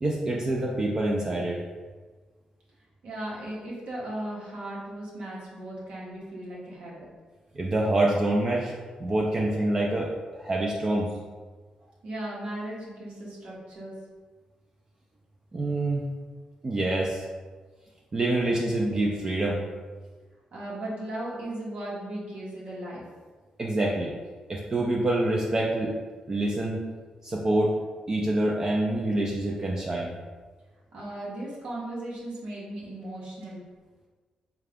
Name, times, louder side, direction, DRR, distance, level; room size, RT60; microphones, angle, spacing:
voice 1, 0.0-1.6 7.6-8.7 9.0-11.1 15.5-16.0 16.6-17.2 18.1-19.6 23.6-24.1 24.5-25.9 26.3-26.8 27.2-27.7 28.1-30.1, right 1 dB, 30° right, -2 dB, 0.4 m, -26 dB
voice 2, 3.0-7.0 12.0-13.9 20.5-23.0 30.9-33.6, right 1 dB, 75° right, -5 dB, 0.9 m, -37 dB
3.7 x 2.3 x 3.4 m, 1.4 s
cardioid pair, 115°, 2 cm